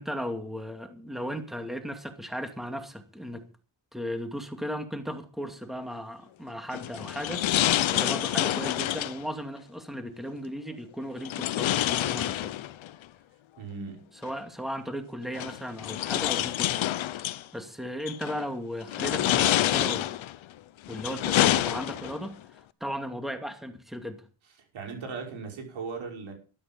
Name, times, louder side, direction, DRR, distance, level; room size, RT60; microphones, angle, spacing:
voice 1, 0.0-3.5 3.9-7.5 7.9-12.5 14.2-16.9 17.5-20.2 20.9-22.4 22.8-24.2, equal, ahead, 2.5 m, -36 dB
sound 1, 6.7-9.2 11.2-12.9 14.3-14.4 15.3-17.4 18.1-18.4 18.9-20.4 20.9-22.3, left 13 dB, 85° left, 0.9 m, -27 dB
voice 2, 13.6-14.0 24.7-26.3, right 5 dB, 80° right, 6.1 m, -37 dB
12.5 x 12.0 x 5.6 m
cardioid pair, 95°, 46 cm